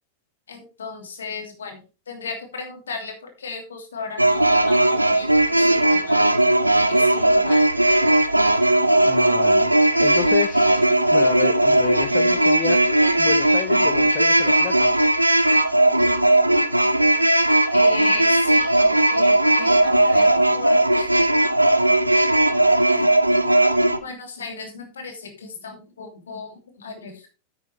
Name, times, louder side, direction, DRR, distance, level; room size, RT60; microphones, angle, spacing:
voice 1, 0.5-1.8 2.1-6.2 6.9-7.6 17.7-21.1 22.9-23.0 24.0-27.3, left 4 dB, 70° left, 4 dB, 2.8 m, -36 dB
sound 1, 4.2-24.0, right 1 dB, 85° right, 0.7 m, -18 dB
voice 2, 9.0-10.9 11.1-12.8 13.2-14.9, left 12 dB, 40° left, 8 dB, 0.9 m, -30 dB
9.4 x 8.9 x 3.4 m, 0.32 s
figure-of-eight pair, 90°, 0 cm